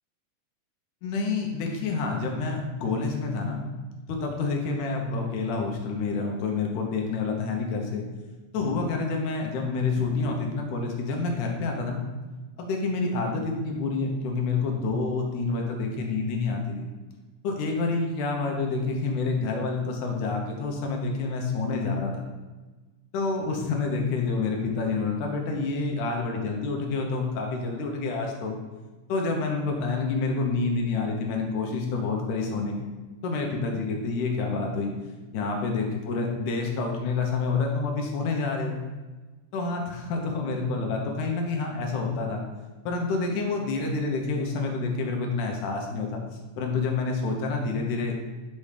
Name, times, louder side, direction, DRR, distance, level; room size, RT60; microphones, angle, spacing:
voice 1, 1.0-3.6 4.1-8.0 8.5-12.0 12.6-16.9 17.4-22.2 23.1-28.6 29.1-32.8 33.2-34.9 35.3-38.8 39.5-42.4 42.9-46.2 46.6-48.1, left 4 dB, 75° left, 1 dB, 2.3 m, -28 dB
6.9 x 3.2 x 5.0 m, 1.3 s
omnidirectional pair, 3.7 m